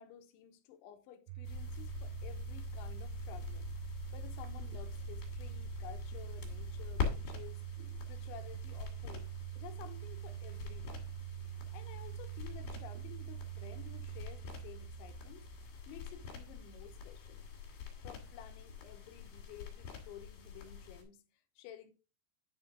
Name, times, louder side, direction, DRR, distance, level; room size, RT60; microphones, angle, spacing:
voice 1, 0.0-3.7 4.1-11.1 11.5-15.5 15.9-17.4 18.0-21.9, left 10 dB, 80° left, 3.2 m, -53 dB
Domestic sounds home sounds, 1.3-18.2, right 16 dB, 85° right, 3.2 m, -45 dB
sound 1, 1.4-21.0, left 7 dB, 60° left, 3.7 m, -45 dB
10.5 x 5.5 x 3.6 m
omnidirectional pair, 5.5 m